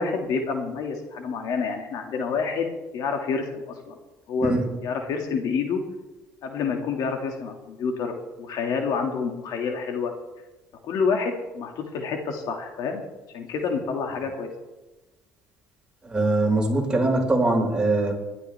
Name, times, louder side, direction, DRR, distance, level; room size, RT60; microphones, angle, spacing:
voice 1, 0.0-2.7 2.9-4.0 4.3-4.5 4.8-5.8 6.4-10.1 10.8-13.0 13.3-14.5, left 5 dB, 65° left, 3 dB, 2.1 m, -28 dB
voice 2, 16.0-18.1, right 2 dB, 10° right, -1 dB, 5.0 m, -22 dB
20.0 x 12.5 x 3.5 m, 1.1 s
supercardioid pair, 90°, 7 cm